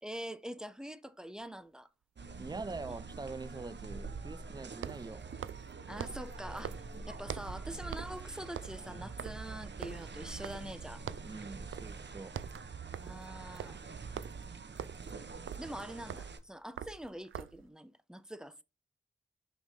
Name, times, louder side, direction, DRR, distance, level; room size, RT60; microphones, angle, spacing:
voice 1, 0.0-1.9 2.5-2.9 5.9-11.0 13.0-13.8 15.6-18.6, equal, 5° right, 0.8 m, -44 dB
sound 1, 1.4-1.5 4.7-7.6 7.9-8.2 8.5-10.8 11.1-11.4 11.7-12.0 12.3-17.7, right 9 dB, 80° right, 0.5 m, -44 dB
sound 2, 2.1-12.6, equal, 35° right, 3.0 m, -67 dB
sound 3, 2.2-16.4, right 4 dB, 65° right, 1.1 m, -45 dB
voice 2, 2.4-5.3 6.9-7.1 11.2-12.4, right 3 dB, 20° right, 0.4 m, -44 dB
6.0 x 5.4 x 3.7 m
cardioid pair, 45°, 20 cm